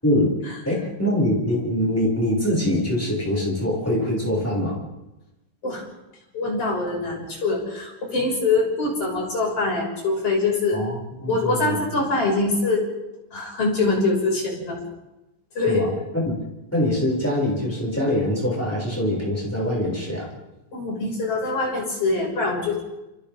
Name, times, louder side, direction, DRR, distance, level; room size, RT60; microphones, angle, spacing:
voice 1, 0.6-4.8 10.7-11.0 11.2-11.8 15.7-15.9 16.1-16.3 16.7-20.3, left 1 dB, 5° left, -5 dB, 7.1 m, -23 dB
voice 2, 6.3-10.8 11.3-12.8 13.3-14.8 15.6-15.8 20.7-22.8, left 3 dB, 40° left, -2 dB, 7.3 m, -23 dB
30.0 x 28.5 x 3.9 m, 0.97 s
omnidirectional pair, 4.0 m